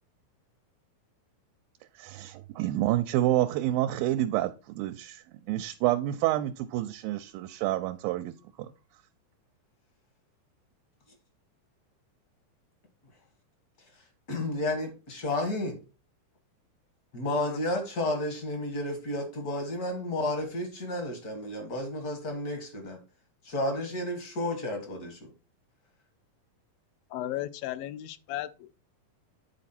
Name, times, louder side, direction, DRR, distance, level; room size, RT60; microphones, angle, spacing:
voice 1, 2.0-5.2 5.5-8.3 8.6-8.7, right 14 dB, 85° right, 2.3 m, -28 dB
voice 2, 14.3-15.8 17.1-23.0 23.4-25.3, left 1 dB, 50° left, 1.1 m, -32 dB
voice 3, 27.1-28.7, left 13 dB, 90° left, 2.4 m, -35 dB
9.5 x 4.1 x 4.3 m
omnidirectional pair, 4.0 m